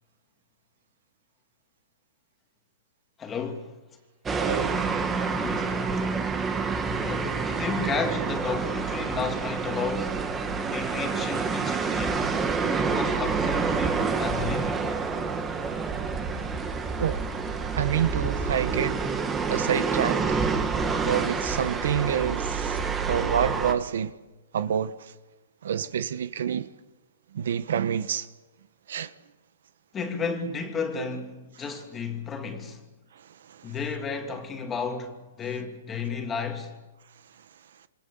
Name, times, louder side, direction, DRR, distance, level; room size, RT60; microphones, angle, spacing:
voice 1, 3.2-3.7 5.4-6.1 7.0-10.2 10.7-14.9 29.9-32.8 33.6-36.8, left 5 dB, 15° left, 2.6 m, -33 dB
sound 1, 4.3-23.7, right 5 dB, 10° right, 1.7 m, -28 dB
voice 2, 4.4-4.7 17.0-17.2 17.8-19.0 19.5-20.4 21.0-22.8 23.1-24.1 24.5-24.9 25.6-26.7 27.3-28.2 28.9-29.1, right 9 dB, 70° right, 1.2 m, -27 dB
28.0 x 27.0 x 7.1 m
hypercardioid pair, 165°, 0 cm